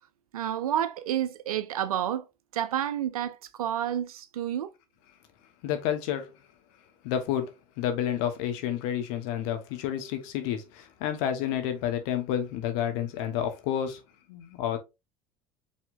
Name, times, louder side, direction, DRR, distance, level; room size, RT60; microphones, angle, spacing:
voice 1, 0.3-2.3 2.5-4.7, right 10 dB, 90° right, 0.5 m, -30 dB
voice 2, 5.6-6.3 7.0-14.0 14.3-14.8, left 10 dB, 70° left, 1.2 m, -30 dB
5.3 x 3.5 x 2.6 m
hypercardioid pair, 70°, 18 cm